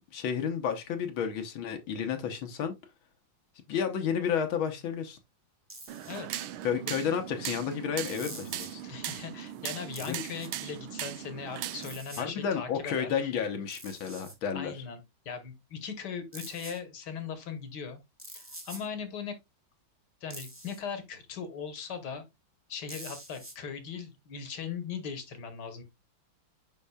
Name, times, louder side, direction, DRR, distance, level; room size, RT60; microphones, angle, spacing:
voice 1, 0.1-2.7 3.7-5.2 6.6-8.8 10.0-10.2 12.2-14.8, left 7 dB, 75° left, 1.7 m, -31 dB
sound 1, 5.7-6.2 8.0-8.8 9.9-10.5 11.8-12.2 13.7-14.3 16.3-16.8 18.2-18.9 20.3-20.8 22.9-23.5, right 1 dB, 10° right, 0.9 m, -45 dB
sound 2, 5.9-12.0, right 12 dB, 80° right, 1.4 m, -39 dB
voice 2, 8.8-13.3 14.5-18.0 18.3-19.4 20.2-22.2 22.7-25.8, left 6 dB, 55° left, 1.6 m, -39 dB
11.0 x 3.7 x 2.3 m
omnidirectional pair, 2.3 m